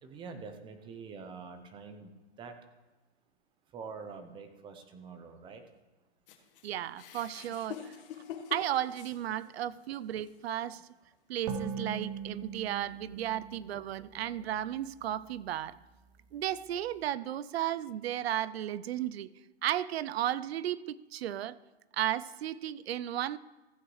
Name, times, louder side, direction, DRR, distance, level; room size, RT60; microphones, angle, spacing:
voice 1, 0.0-2.1 2.4-2.5 3.7-5.6, right 5 dB, 15° right, 8 dB, 0.7 m, -45 dB
sound 1, 6.3-9.7 10.2-10.4 11.3-11.4, left 9 dB, 55° left, 1.5 m, -45 dB
voice 2, 6.6-7.9 8.5-10.8 11.3-15.8 16.3-19.3 19.6-21.6 21.9-23.4, right 12 dB, 70° right, 18 dB, 0.5 m, -34 dB
sound 2, 11.5-15.0, right 6 dB, 40° right, 1.3 m, -40 dB
15.0 x 8.4 x 3.2 m, 1.1 s
hypercardioid pair, 150°, 33 cm